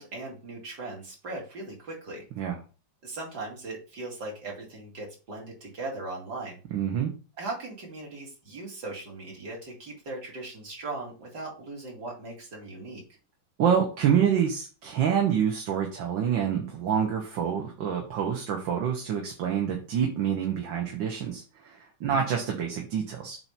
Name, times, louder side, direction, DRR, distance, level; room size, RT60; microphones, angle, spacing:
voice 1, 0.0-2.2 3.0-6.6 7.4-13.0 22.0-22.2, right 2 dB, 55° right, -2 dB, 2.9 m, -39 dB
voice 2, 6.7-7.1 13.6-23.4, right 8 dB, 70° right, 1 dB, 1.8 m, -27 dB
7.7 x 2.8 x 5.8 m, 0.34 s
omnidirectional pair, 2.2 m